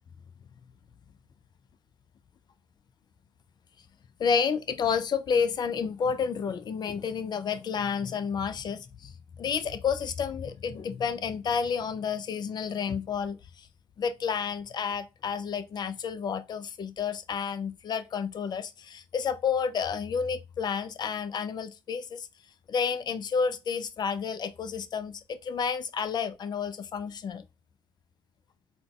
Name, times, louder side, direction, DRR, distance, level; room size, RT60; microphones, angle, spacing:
voice 1, 4.2-13.7 14.0-22.3 22.7-27.4, left 6 dB, 40° left, 0.4 m, -30 dB
3.8 x 2.2 x 2.2 m
hypercardioid pair, 55°, 11 cm